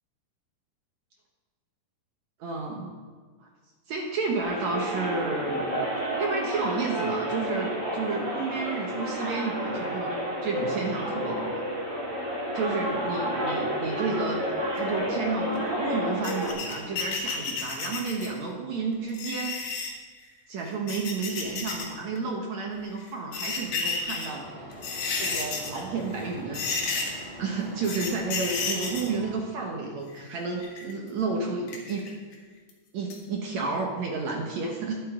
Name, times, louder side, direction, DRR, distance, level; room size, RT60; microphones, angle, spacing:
voice 1, 2.4-2.9 3.9-5.7 6.2-11.6 12.5-14.5 14.7-19.7 20.5-24.5 25.2-27.0 27.4-32.0 32.9-35.0, right 4 dB, 65° right, 0 dB, 2.0 m, -31 dB
sound 1, 4.4-16.5, right 1 dB, 25° right, 2.6 m, -30 dB
sound 2, 16.2-18.4 19.1-19.9 20.7-21.9 22.2-22.3 23.1-24.3 24.7-25.8 26.1-26.3 26.5-27.3 27.8-29.1 30.1-30.9 31.7-32.3 32.7-32.8 33.1-33.2, left 4 dB, 65° left, 3.0 m, -31 dB
sound 3, 24.2-29.3, equal, 5° left, 3.1 m, -43 dB
21.5 x 8.3 x 3.7 m, 1.5 s
omnidirectional pair, 4.2 m